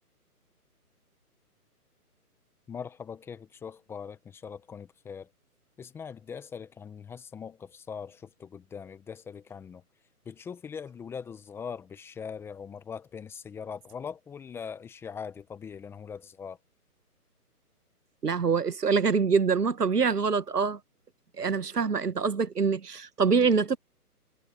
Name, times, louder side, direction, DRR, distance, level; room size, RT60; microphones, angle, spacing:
voice 1, 2.7-5.3 5.8-9.8 10.2-16.6, left 6 dB, 5° left, 1.2 m, -41 dB
voice 2, 18.2-20.8 21.4-23.8, right 5 dB, 85° right, 1.5 m, -25 dB
figure-of-eight pair, 145°, 46 cm